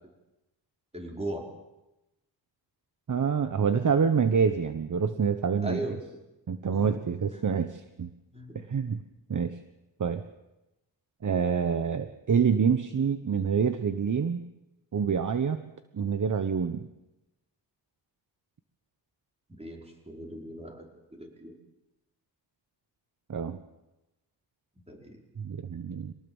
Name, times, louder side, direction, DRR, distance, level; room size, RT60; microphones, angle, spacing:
voice 1, 0.9-1.5 5.6-6.2 6.7-6.9 7.3-7.4 8.3-8.7 19.5-21.5 24.8-25.2, right 1 dB, 15° right, 0 dB, 5.2 m, -38 dB
voice 2, 3.1-5.8 6.5-8.1 8.5-9.0 9.3-9.6 10.0-10.2 11.2-14.4 14.9-15.6 15.9-16.9 23.3-23.6 25.4-26.1, right 6 dB, 45° right, 9 dB, 1.2 m, -27 dB
23.0 x 19.0 x 7.3 m, 0.98 s
cardioid pair, 85°, 45 cm